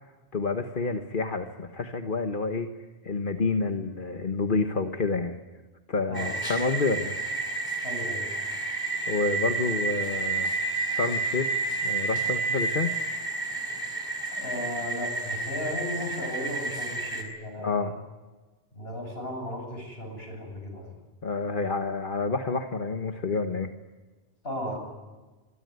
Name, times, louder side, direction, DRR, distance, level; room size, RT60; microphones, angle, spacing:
voice 1, 0.3-2.7 3.0-5.4 5.9-7.3 9.1-10.5 10.9-12.9 17.6-17.9 21.2-23.7, left 4 dB, 55° left, 6 dB, 1.5 m, -29 dB
sound 1, 6.1-17.2, right 3 dB, 20° left, 4.6 m, -30 dB
voice 2, 7.8-8.3 14.4-17.9 18.7-20.9 24.4-24.8, left 1 dB, 70° left, 3 dB, 8.0 m, -35 dB
27.0 x 22.5 x 9.5 m, 1.3 s
omnidirectional pair, 1.1 m